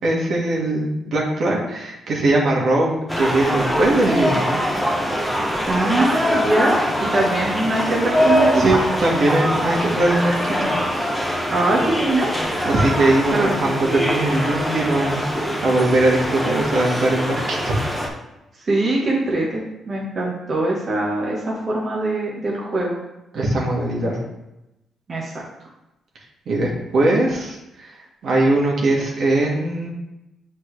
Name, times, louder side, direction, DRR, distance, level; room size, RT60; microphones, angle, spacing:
voice 1, 0.0-4.6 8.5-10.7 12.6-15.2 15.6-17.7 23.3-24.2 26.4-27.9 28.2-29.9, right 2 dB, 60° right, -3 dB, 1.7 m, -20 dB
sound 1, 3.1-18.1, equal, 5° left, 1.1 m, -23 dB
voice 2, 5.7-8.8 11.5-12.3 13.3-13.5 18.7-23.0 25.1-25.3, right 2 dB, 35° right, -4 dB, 1.2 m, -22 dB
8.2 x 4.3 x 3.2 m, 0.93 s
cardioid pair, 110°, 0 cm